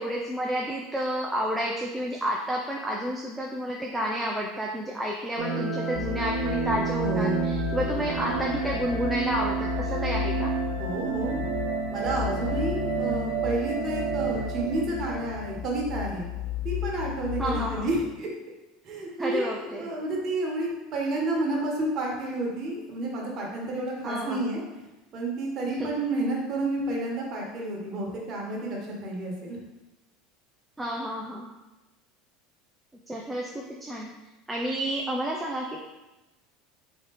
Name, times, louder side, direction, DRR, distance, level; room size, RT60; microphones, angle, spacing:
voice 1, 0.0-10.5 17.4-17.9 19.2-19.9 24.0-24.5 25.8-25.9 30.8-31.5 33.1-34.1 34.5-35.8, equal, 10° right, -1 dB, 0.5 m, -30 dB
sound 1, 5.4-15.6, right 5 dB, 80° right, 0.8 m, -30 dB
sound 2, 5.9-17.9, left 14 dB, 55° left, 0.4 m, -35 dB
voice 2, 7.0-7.4 10.8-11.5 11.9-16.3 16.6-18.3 18.8-24.6 25.1-29.6, right 2 dB, 45° right, -2 dB, 1.4 m, -30 dB
3.8 x 3.2 x 4.1 m, 1.1 s
supercardioid pair, 105°, 0 cm